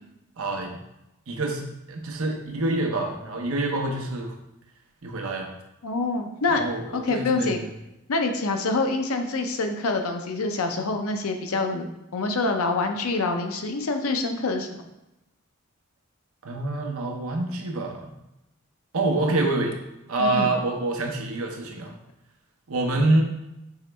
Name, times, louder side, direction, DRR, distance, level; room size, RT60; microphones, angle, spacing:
voice 1, 0.4-0.8 1.3-1.6 1.9-4.3 5.0-5.5 6.5-7.5 16.4-18.1 18.9-19.8 20.1-21.9 22.7-23.2, right 2 dB, 75° right, 2 dB, 0.7 m, -26 dB
voice 2, 5.8-6.6 6.9-7.7 8.1-11.8 12.1-14.8 20.2-20.5, left 3 dB, 90° left, 5 dB, 0.6 m, -26 dB
4.6 x 3.0 x 3.3 m, 0.90 s
head